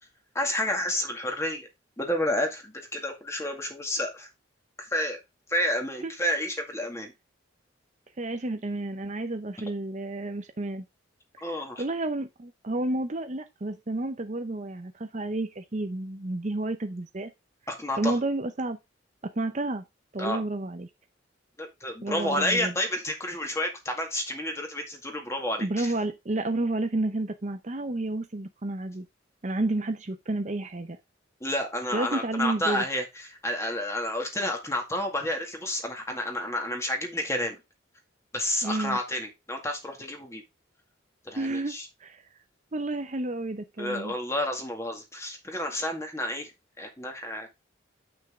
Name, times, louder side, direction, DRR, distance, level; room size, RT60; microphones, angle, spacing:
voice 1, 0.3-1.7 2.0-4.3 4.8-5.2 5.5-7.1 11.4-11.8 17.7-18.1 20.2-20.4 21.6-25.9 31.4-37.6 38.3-40.4 41.3-41.9 43.8-46.5 46.8-47.5, left 1 dB, 15° left, 2.0 m, -30 dB
voice 2, 8.2-10.8 11.4-17.3 18.0-18.8 19.2-19.8 20.1-20.9 22.0-22.7 25.6-29.1 29.4-31.0 31.9-32.8 38.6-39.0 41.4-42.2 42.7-44.1, right 2 dB, 40° right, 0.7 m, -31 dB
8.1 x 6.1 x 3.6 m
head